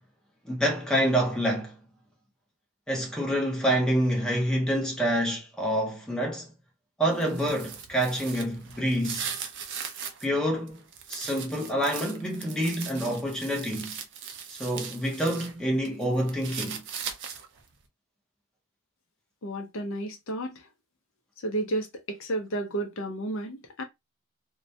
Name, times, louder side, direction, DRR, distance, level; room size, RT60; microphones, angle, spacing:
voice 1, 0.4-1.7 2.9-6.5 7.0-9.2 10.2-10.8 11.1-13.9 14.5-16.8, equal, 5° left, 0.6 m, -27 dB
sound 1, 7.1-10.3 10.7-15.5 15.8-17.6, right 7 dB, 55° right, 0.4 m, -39 dB
voice 2, 19.4-20.6 21.4-23.8, right 1 dB, 60° left, 0.6 m, -32 dB
2.3 x 2.1 x 2.6 m
head